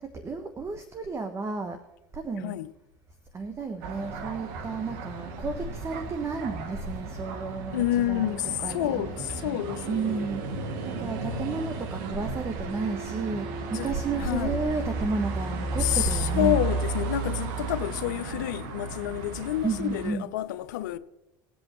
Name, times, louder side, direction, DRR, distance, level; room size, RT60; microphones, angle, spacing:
voice 1, 0.0-1.8 2.1-2.6 3.3-8.4 8.6-9.0 9.4-9.5 9.9-16.6 19.6-20.3, right 4 dB, 30° right, 1.1 m, -32 dB
sound 1, 3.8-20.1, right 3 dB, 75° right, 1.2 m, -34 dB
voice 2, 7.7-10.3 13.7-13.9 14.2-14.6 15.8-21.0, left 14 dB, 85° left, 0.6 m, -29 dB
20.0 x 8.0 x 3.1 m
supercardioid pair, 90°, 10 cm